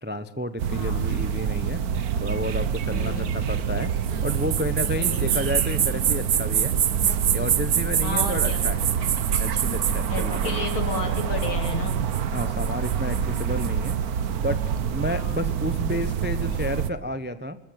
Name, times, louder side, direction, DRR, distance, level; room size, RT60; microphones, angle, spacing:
voice 1, 0.0-1.8 2.2-3.9 4.2-6.8 7.3-8.8 9.4-10.7 12.3-14.0 14.3-17.6, equal, 10° right, 12 dB, 0.5 m, -31 dB
sound 1, 0.6-16.9, right 8 dB, 55° right, 1.3 m, -25 dB
voice 2, 0.7-1.1 2.9-3.3 5.0-5.3 8.0-8.6 10.1-12.0 15.1-15.4, left 3 dB, 80° left, 5 dB, 4.4 m, -32 dB
25.5 x 14.0 x 9.3 m, 0.78 s
omnidirectional pair, 2.2 m